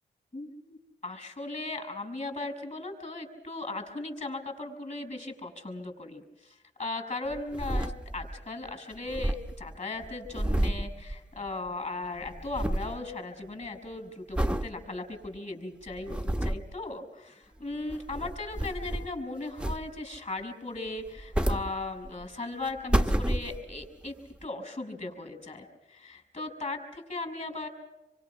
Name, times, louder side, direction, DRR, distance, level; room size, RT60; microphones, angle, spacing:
voice 1, 0.3-24.1 24.4-27.7, left 2 dB, 35° left, 6 dB, 6.2 m, -37 dB
sound 1, 7.3-8.4 8.7-8.8 9.0-11.7 12.0-13.0 13.5-13.8 14.3-14.7 15.2-15.3 15.9-16.7 17.7-19.2 19.6-20.2 21.0-22.3 22.7-23.9 24.4-24.5, right 1 dB, 5° right, 1.2 m, -30 dB
27.5 x 24.0 x 5.9 m, 0.96 s
cardioid pair, 60°, 19 cm